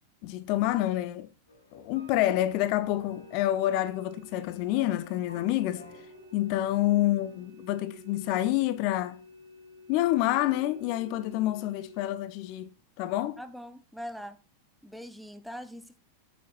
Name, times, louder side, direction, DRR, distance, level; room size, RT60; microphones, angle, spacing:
voice 1, 0.2-1.3 1.7-5.8 6.3-9.2 9.9-13.4, left 14 dB, 45° left, 0.6 m, -28 dB
sound 1, 1.5-7.5, left 3 dB, 75° left, 1.7 m, -52 dB
sound 2, 3.1-12.1, equal, 60° right, 1.0 m, -52 dB
voice 2, 13.4-14.4 14.8-16.0, equal, ahead, 0.6 m, -42 dB
8.3 x 7.2 x 2.9 m
figure-of-eight pair, 90°, 0 cm